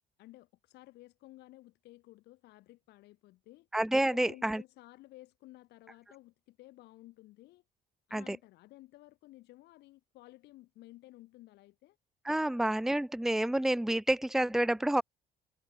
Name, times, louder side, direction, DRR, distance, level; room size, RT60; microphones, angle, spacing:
voice 1, 0.2-3.7 4.1-7.6 8.1-12.0, left 17 dB, 85° left, 5.6 m, -55 dB
voice 2, 3.7-4.6 8.1-8.4 12.3-15.0, right 1 dB, ahead, 0.8 m, -29 dB
cardioid pair, 110°, 17 cm